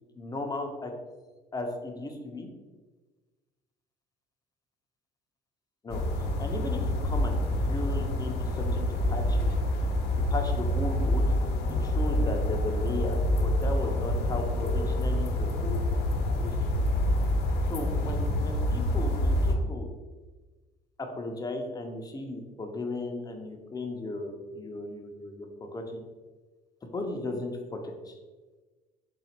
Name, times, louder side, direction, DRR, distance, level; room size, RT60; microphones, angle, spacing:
voice 1, 0.2-0.9 1.5-2.5 5.8-6.0 6.4-9.5 10.3-11.2 11.8-15.8 16.4-16.8 17.7-19.9 21.0-26.0 26.9-28.1, left 2 dB, 20° left, 3 dB, 0.6 m, -36 dB
sound 1, 5.9-19.5, left 1 dB, 70° left, 0.7 m, -27 dB
3.9 x 2.4 x 4.3 m, 1.3 s
cardioid pair, 110°, 17 cm